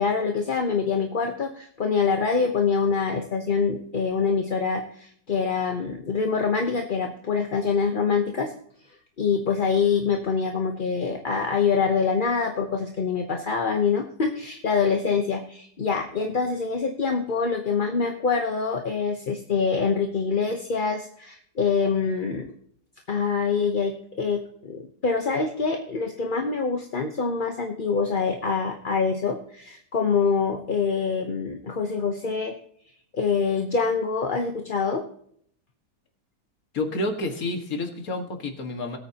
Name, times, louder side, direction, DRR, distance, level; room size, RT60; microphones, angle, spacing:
voice 1, 0.0-8.5 9.2-22.5 23.1-32.5 33.1-35.0, left 5 dB, 35° left, 3 dB, 0.9 m, -25 dB
voice 2, 36.7-39.0, left 2 dB, 55° left, 4 dB, 2.1 m, -29 dB
20.0 x 8.8 x 2.9 m, 0.64 s
omnidirectional pair, 1.9 m